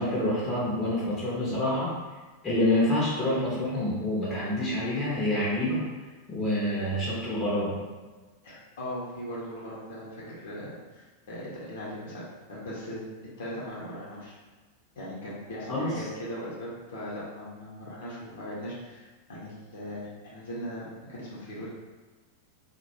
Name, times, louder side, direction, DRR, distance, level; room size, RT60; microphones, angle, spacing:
voice 1, 0.0-1.9 2.4-5.8 6.3-7.8 15.7-15.9, left 1 dB, 20° left, -7 dB, 0.7 m, -27 dB
voice 2, 8.4-13.0 13.4-14.4 15.0-21.7, equal, 60° left, -7 dB, 0.8 m, -39 dB
2.3 x 2.1 x 2.9 m, 1.3 s
figure-of-eight pair, 90°, 0 cm